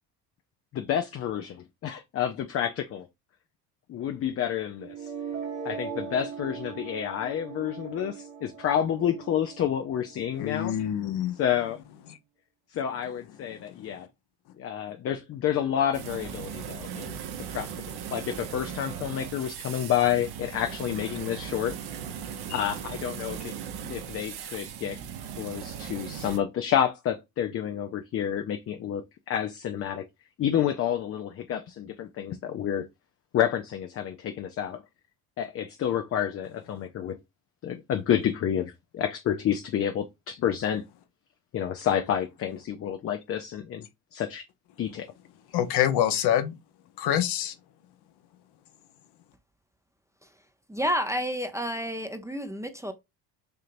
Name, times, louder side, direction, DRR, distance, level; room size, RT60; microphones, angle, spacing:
voice 1, 0.7-3.1 3.9-5.1 5.6-10.7 11.4-11.8 12.7-14.1 14.6-17.2 17.5-17.7 18.1-21.7 22.5-23.5 23.8-25.0 25.4-30.0 30.4-32.9 33.3-34.8 35.4-37.2 37.6-40.8 41.5-44.5 44.8-45.1, left 9 dB, 30° left, 0.5 m, -29 dB
sound 1, 4.8-10.8, right 6 dB, 80° right, 1.3 m, -39 dB
voice 2, 10.4-11.4 13.9-14.0 22.5-22.6 45.5-46.5 47.0-47.5, left 10 dB, 50° left, 0.8 m, -26 dB
sound 2, 15.9-26.4, right 8 dB, 50° right, 1.0 m, -38 dB
voice 3, 50.7-52.9, equal, 5° right, 0.7 m, -30 dB
6.7 x 2.8 x 2.6 m
hypercardioid pair, 60°, 50 cm